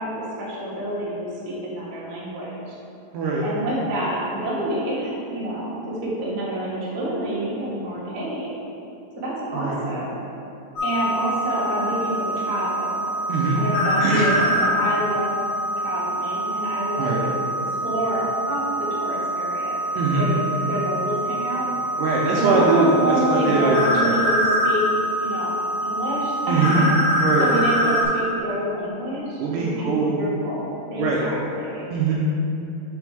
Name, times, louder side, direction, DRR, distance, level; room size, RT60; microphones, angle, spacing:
voice 1, 0.0-2.7 3.4-8.5 9.2-10.1 10.8-13.0 13.5-15.4 15.8-19.8 20.1-20.4 20.7-21.7 22.1-24.8 25.2-26.9 27.2-31.8, right 1 dB, 55° right, -8 dB, 1.1 m, -28 dB
voice 2, 3.1-3.5 9.5-9.8 13.3-13.6 14.0-14.3 17.0-17.2 20.0-20.3 22.0-24.1 26.5-26.8 27.2-27.5 29.4-30.1 31.0-31.2 31.9-32.1, right 3 dB, 80° right, -4 dB, 2.0 m, -21 dB
sound 1, 10.8-28.0, equal, 55° left, 2.1 m, -25 dB
6.1 x 4.1 x 4.7 m, 2.8 s
omnidirectional pair, 4.2 m